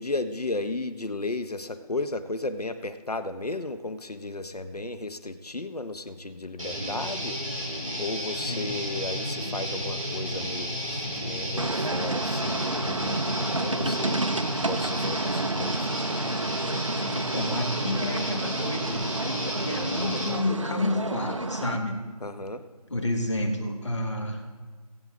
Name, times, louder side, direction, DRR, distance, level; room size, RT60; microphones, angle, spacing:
voice 1, 0.0-7.4 8.0-14.2 14.7-15.9 22.2-22.6, left 2 dB, 75° left, 10 dB, 1.0 m, -34 dB
Guitar, 6.6-20.3, equal, ahead, 2.1 m, -32 dB
sound 1, 11.6-21.8, right 2 dB, 50° right, 0.6 m, -30 dB
voice 2, 17.1-22.0 22.9-24.4, left 1 dB, 50° left, 3 dB, 1.8 m, -30 dB
24.0 x 8.1 x 3.7 m, 1.4 s
figure-of-eight pair, 175°, 20 cm